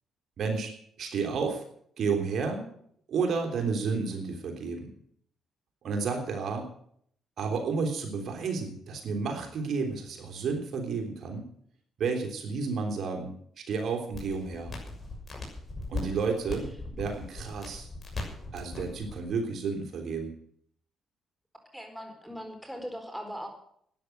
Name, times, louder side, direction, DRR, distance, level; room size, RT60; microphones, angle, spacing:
voice 1, 0.4-1.6 2.0-2.7 3.1-4.9 5.8-6.7 7.4-11.4 12.0-14.7 15.9-17.9 18.5-20.3, right 5 dB, 60° right, 3 dB, 3.4 m, -31 dB
sound 1, 14.1-19.2, left 2 dB, 30° left, 6.6 m, -39 dB
voice 2, 16.0-16.4 21.7-23.5, equal, ahead, 4 dB, 4.2 m, -40 dB
13.0 x 10.0 x 9.1 m, 0.67 s
cardioid pair, 90°, 0 cm